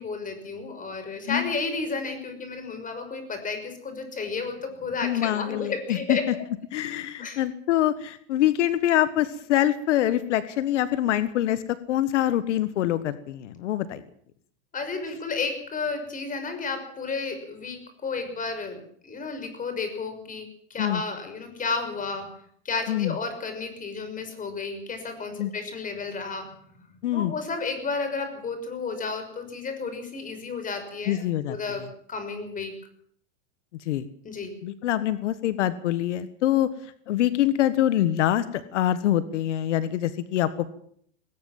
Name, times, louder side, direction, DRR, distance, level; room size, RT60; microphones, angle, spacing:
voice 1, 0.0-6.3 7.2-7.4 14.7-22.3 22.6-26.5 26.8-26.9 27.1-31.2 31.5-32.7 34.2-34.6, left 4 dB, 25° left, 8 dB, 6.0 m, -32 dB
voice 2, 5.0-6.2 6.7-11.6 11.9-14.0 20.8-21.0 22.9-23.1 25.4-25.5 27.0-27.3 31.1-31.6 33.8-34.0 34.6-36.7 37.1-40.7, left 12 dB, 85° left, 14 dB, 1.5 m, -25 dB
20.0 x 18.0 x 7.6 m, 0.63 s
supercardioid pair, 130°, 35 cm